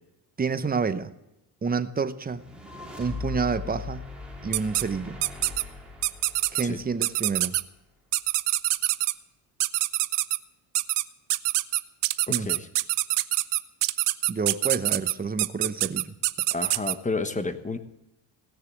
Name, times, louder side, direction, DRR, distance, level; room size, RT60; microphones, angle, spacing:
voice 1, 0.4-1.1 1.6-2.4 3.0-4.0 4.4-5.2 6.5-7.6 12.3-12.5 14.3-16.1, right 5 dB, 20° right, 0.8 m, -28 dB
sound 1, 2.3-7.6, left 4 dB, ahead, 3.0 m, -39 dB
sound 2, 4.5-4.8 5.2-5.6 6.0-6.6 7.0-7.6 8.1-9.1 9.6-10.4 10.7-11.0 11.3-16.9, right 17 dB, 65° right, 0.7 m, -24 dB
voice 2, 12.3-12.7 16.5-17.8, left 3 dB, 15° left, 1.2 m, -30 dB
17.5 x 6.7 x 8.7 m
supercardioid pair, 85°, 45 cm